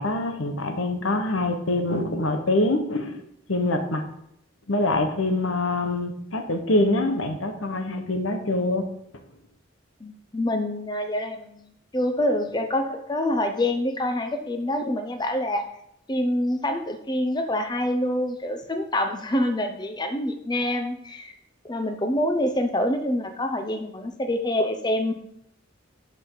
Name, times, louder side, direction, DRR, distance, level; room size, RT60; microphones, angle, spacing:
voice 1, 0.0-3.2 3.5-4.0 4.7-8.8, left 2 dB, 80° left, 6 dB, 1.3 m, -25 dB
voice 2, 10.0-15.7 16.1-21.3 21.6-25.1, left 1 dB, 20° left, 6 dB, 0.7 m, -26 dB
12.0 x 5.3 x 3.9 m, 0.74 s
head